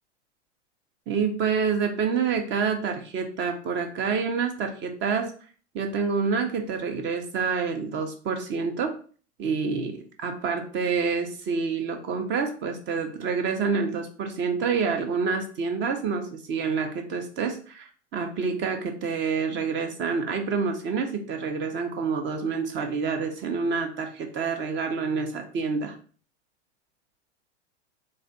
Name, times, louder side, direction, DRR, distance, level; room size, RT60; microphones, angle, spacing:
voice 1, 1.1-5.3 5.7-8.9 9.4-25.9, right 5 dB, 30° right, 5 dB, 0.8 m, -27 dB
3.2 x 2.6 x 3.9 m, 0.41 s
hypercardioid pair, 100°, 35 cm